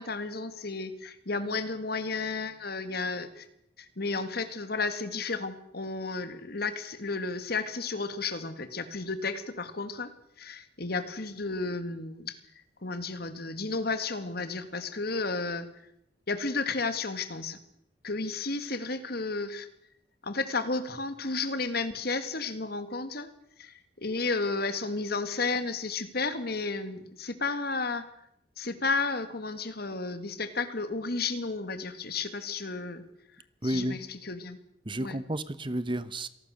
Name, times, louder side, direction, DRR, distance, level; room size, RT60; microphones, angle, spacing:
voice 1, 0.0-3.5 3.8-10.1 10.4-12.4 12.8-15.7 16.3-17.6 18.0-19.7 20.2-23.3 23.6-28.1 28.6-33.0 33.6-34.6 35.0-35.2, left 3 dB, 55° left, 11 dB, 2.1 m, -32 dB
voice 2, 33.6-34.0 34.9-36.3, right 1 dB, 25° right, 14 dB, 1.0 m, -31 dB
27.0 x 19.0 x 6.6 m, 0.76 s
head